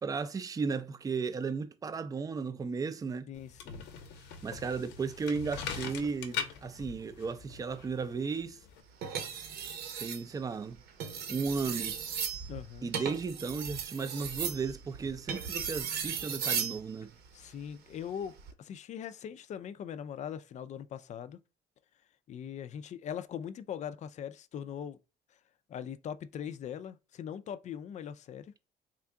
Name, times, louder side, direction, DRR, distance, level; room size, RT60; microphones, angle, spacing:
voice 1, 0.0-3.3 4.4-8.6 10.0-10.8 11.3-12.0 12.8-17.1, right 5 dB, 20° right, 0.4 m, -35 dB
sound 1, 3.3-8.8, left 6 dB, 85° left, 0.8 m, -42 dB
voice 2, 3.3-3.9 12.5-12.9 17.3-21.4 22.3-25.0 25.7-28.5, left 8 dB, 45° left, 0.4 m, -41 dB
sound 2, 9.0-10.2 10.9-16.8 18.2-18.5, right 7 dB, 75° right, 0.9 m, -36 dB
3.6 x 2.3 x 3.6 m
cardioid pair, 110°, 17 cm